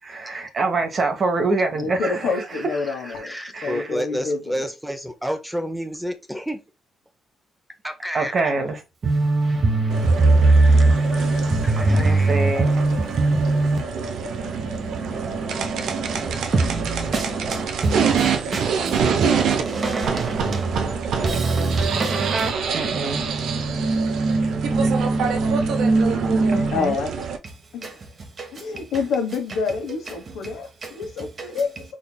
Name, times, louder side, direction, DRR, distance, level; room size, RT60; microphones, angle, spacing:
voice 1, 0.0-3.9 8.1-19.2 19.6-27.0 27.8-28.9 29.3-29.4 29.9-30.6 30.8-31.8, right 3 dB, 45° right, 1.0 m, -23 dB
voice 2, 1.7-3.3 3.6-4.7 26.7-27.1 27.7-27.9 28.5-31.9, left 5 dB, 80° left, 1.1 m, -27 dB
voice 3, 2.8-6.6 7.8-8.5 10.4-12.6 15.9-16.0 22.7-23.0, equal, 5° right, 0.7 m, -31 dB
sound 1, 9.9-27.4, right 6 dB, 75° right, 0.6 m, -26 dB
4.0 x 3.3 x 2.2 m
cardioid pair, 90°, 0 cm